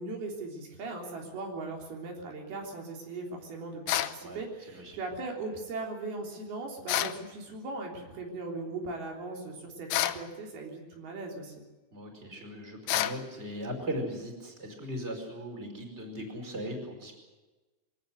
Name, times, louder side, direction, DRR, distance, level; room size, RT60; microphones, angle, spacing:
voice 1, 0.0-11.5, right 3 dB, 80° right, 1 dB, 5.4 m, -39 dB
sound 1, 3.9-4.2 6.9-7.2 9.9-10.2 12.9-13.2, left 13 dB, 85° left, 2.9 m, -28 dB
voice 2, 11.9-17.1, equal, 15° right, 3 dB, 5.1 m, -38 dB
23.0 x 18.5 x 8.0 m, 1.2 s
omnidirectional pair, 4.4 m